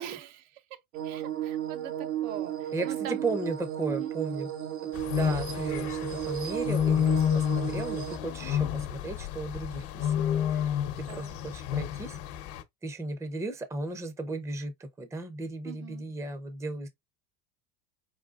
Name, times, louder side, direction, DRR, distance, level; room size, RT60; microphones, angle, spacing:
voice 1, 0.0-3.2 3.9-4.1 8.4-8.7 11.1-11.4 15.6-16.1, right 10 dB, 65° right, 0.9 m, -43 dB
sound 1, 0.9-8.2, right 11 dB, 85° right, 1.4 m, -34 dB
voice 2, 3.2-4.5 5.1-10.7 11.0-12.2 12.8-16.9, right 3 dB, 5° right, 0.6 m, -35 dB
sound 2, 4.9-12.6, left 9 dB, 55° left, 0.9 m, -30 dB
4.3 x 3.9 x 2.4 m
supercardioid pair, 135°, 41 cm